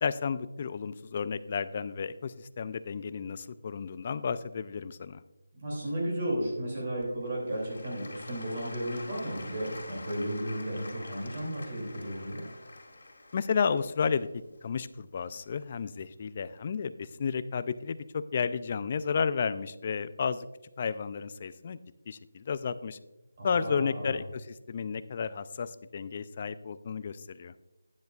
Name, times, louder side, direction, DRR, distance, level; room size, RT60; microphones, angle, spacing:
voice 1, 0.0-5.2 13.3-14.3 14.6-20.5 20.8-21.8 22.1-23.0 23.4-27.5, left 6 dB, 30° left, 14 dB, 0.3 m, -32 dB
voice 2, 5.5-12.4 23.4-24.2, right 1 dB, 30° right, -3 dB, 2.7 m, -34 dB
Applause / Crowd, 7.0-15.9 16.5-16.6, left 2 dB, 65° left, 2.2 m, -47 dB
12.0 x 9.5 x 2.4 m, 1.0 s
figure-of-eight pair, 170°, 0 cm